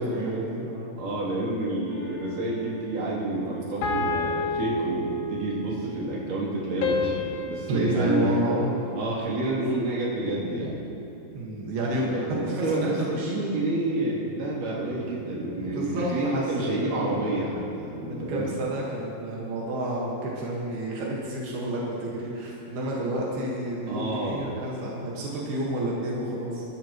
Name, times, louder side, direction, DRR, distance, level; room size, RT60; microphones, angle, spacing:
voice 1, 0.0-0.9 7.7-8.7 11.3-12.1 12.5-13.3 15.6-17.3 18.0-26.6, right 1 dB, 85° right, -4 dB, 3.7 m, -30 dB
voice 2, 1.0-8.3 9.0-10.8 11.9-18.5 23.9-24.5, right 2 dB, 60° right, -6 dB, 4.4 m, -29 dB
sound 1, 1.9-2.6 3.8-5.6 6.8-9.2, left 3 dB, 75° left, 3.6 m, -31 dB
25.0 x 13.0 x 3.1 m, 2.9 s
omnidirectional pair, 4.3 m